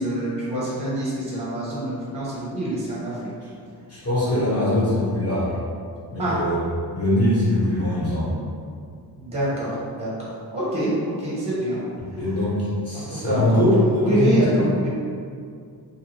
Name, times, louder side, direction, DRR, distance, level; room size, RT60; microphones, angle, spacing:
voice 1, 0.0-3.2 4.3-5.0 6.2-6.4 9.2-11.8 12.1-12.3 12.9-14.9, right 1 dB, 15° right, -7 dB, 0.6 m, -26 dB
voice 2, 3.9-5.5 6.1-6.6 6.9-8.3 12.0-14.7, left 1 dB, 35° left, -10 dB, 1.2 m, -22 dB
2.7 x 2.5 x 2.9 m, 2.3 s
wide cardioid pair, 175°, 42 cm